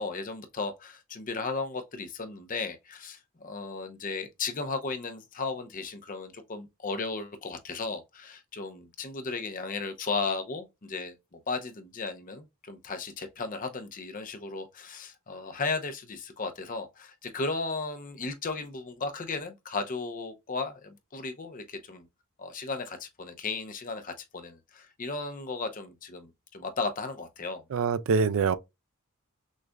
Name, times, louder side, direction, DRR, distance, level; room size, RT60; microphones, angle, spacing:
voice 1, 0.0-22.1 22.4-27.6, left 3 dB, 40° left, 0.6 m, -35 dB
voice 2, 27.7-28.6, right 5 dB, 60° right, 0.3 m, -24 dB
6.2 x 2.4 x 2.2 m
head